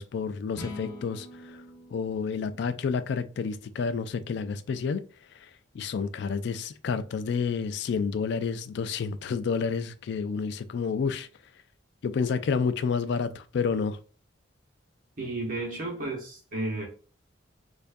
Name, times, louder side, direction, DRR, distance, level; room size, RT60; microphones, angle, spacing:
voice 1, 0.0-1.6 1.9-5.0 5.4-5.5 5.7-11.3 12.0-14.0, left 5 dB, 60° left, 0.3 m, -29 dB
sound 1, 0.5-3.8, left 1 dB, 10° left, 0.9 m, -44 dB
voice 2, 15.2-16.9, right 2 dB, 45° right, 1.1 m, -32 dB
4.4 x 2.5 x 2.5 m
head